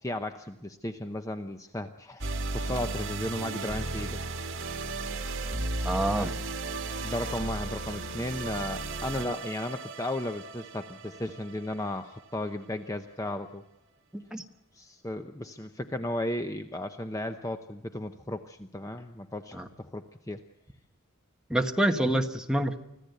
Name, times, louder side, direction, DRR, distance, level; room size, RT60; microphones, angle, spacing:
voice 1, 0.0-4.2 6.1-6.4 7.0-13.6 14.7-20.4, left 1 dB, 15° left, 7 dB, 0.7 m, -35 dB
sound 1, 2.2-12.6, right 2 dB, 65° right, 2.2 m, -35 dB
voice 2, 5.8-6.3 14.1-14.4 19.5-19.7 21.5-22.8, right 1 dB, 5° right, 4 dB, 1.3 m, -27 dB
25.5 x 15.5 x 8.1 m, 0.89 s
head